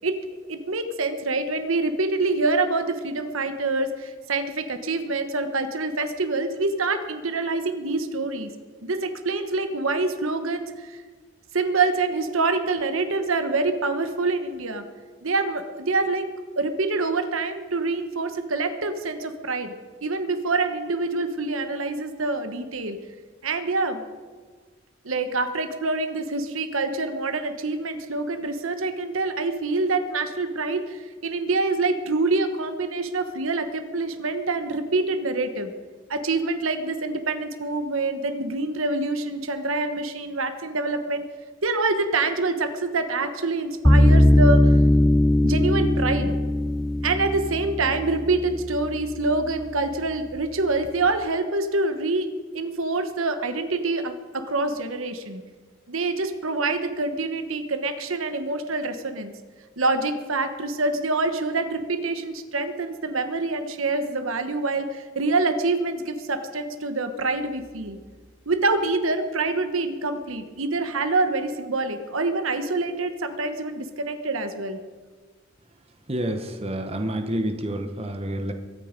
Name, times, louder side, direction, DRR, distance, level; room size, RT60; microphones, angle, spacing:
voice 1, 0.0-8.5 8.8-11.0 11.5-14.9 15.2-19.7 20.0-23.0 23.4-24.0 25.0-35.7 36.1-41.2 41.6-44.7 45.4-46.4 47.0-55.4 55.9-59.3 59.8-68.0 68.5-74.8, right 3 dB, 80° right, 9 dB, 1.2 m, -26 dB
sound 1, 43.8-49.0, left 1 dB, ahead, 0.5 m, -19 dB
voice 2, 76.1-78.5, right 1 dB, 30° right, 6 dB, 1.1 m, -28 dB
22.5 x 9.3 x 5.3 m, 1.4 s
head